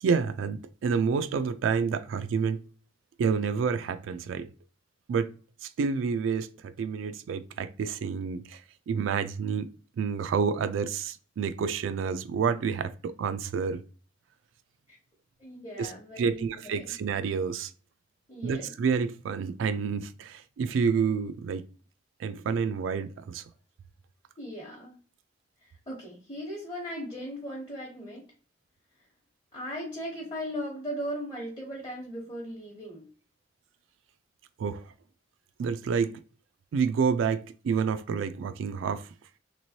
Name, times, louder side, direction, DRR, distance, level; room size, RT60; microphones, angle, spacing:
voice 1, 0.0-2.6 3.2-4.5 5.1-5.3 5.6-8.6 8.9-9.7 10.0-13.8 15.8-15.9 16.2-17.7 18.4-21.6 22.2-23.4 34.6-34.8 35.6-36.2 36.7-39.1, right 6 dB, 80° right, 0.3 m, -29 dB
voice 2, 15.4-16.9 18.3-18.7 24.4-24.9 25.6-28.3 29.5-33.1, equal, 25° left, 0.9 m, -38 dB
3.0 x 2.9 x 2.7 m
head